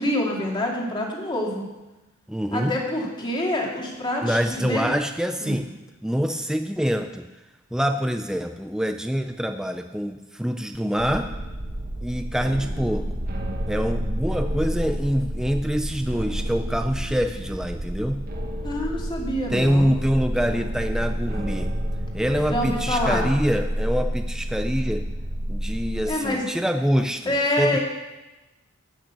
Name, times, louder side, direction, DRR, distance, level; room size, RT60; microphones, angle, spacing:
voice 1, 0.0-1.6 2.5-4.9 5.4-5.6 18.6-19.9 22.5-23.3 26.1-26.4 27.3-27.8, left 1 dB, 20° left, -2 dB, 2.4 m, -26 dB
voice 2, 2.3-2.7 4.2-5.7 6.0-7.2 7.7-11.3 12.0-13.1 13.7-18.2 19.5-21.7 22.1-25.0 25.5-27.8, equal, 5° right, 6 dB, 0.4 m, -25 dB
sound 1, 11.0-26.0, equal, 45° right, 1.3 m, -29 dB
12.5 x 6.4 x 8.2 m, 1.1 s
head